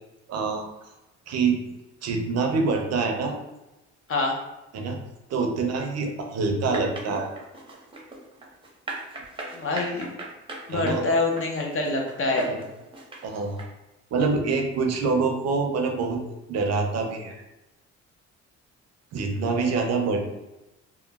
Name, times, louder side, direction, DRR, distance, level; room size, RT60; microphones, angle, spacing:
voice 1, 0.3-0.6 1.3-1.7 2.0-3.4 4.7-5.0 5.3-7.3 10.7-11.0 12.4-12.6 13.2-13.6 14.1-16.2 16.5-17.4 19.1-20.2, right 4 dB, 60° right, 3 dB, 0.5 m, -25 dB
sound 1, 6.7-13.6, right 2 dB, 15° right, 0.6 m, -38 dB
voice 2, 9.5-10.1 10.7-12.5, left 2 dB, 45° left, 1 dB, 0.6 m, -25 dB
2.9 x 2.1 x 2.3 m, 0.99 s
cardioid pair, 90°, 30 cm